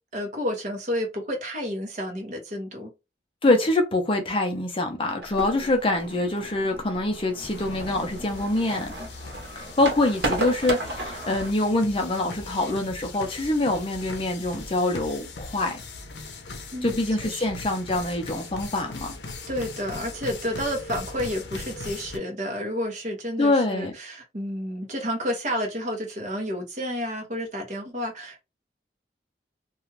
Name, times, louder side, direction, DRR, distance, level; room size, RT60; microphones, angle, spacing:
voice 1, 0.1-2.9 16.7-17.5 19.5-28.4, equal, 40° right, 0.9 m, -30 dB
voice 2, 3.4-8.9 9.6-15.8 16.8-19.1 23.4-23.9, left 2 dB, 30° left, 0.5 m, -25 dB
sound 1, 5.2-11.5, right 1 dB, 80° right, 1.0 m, -34 dB
sound 2, 7.4-22.2, left 3 dB, 85° left, 0.6 m, -40 dB
2.4 x 2.3 x 3.1 m
head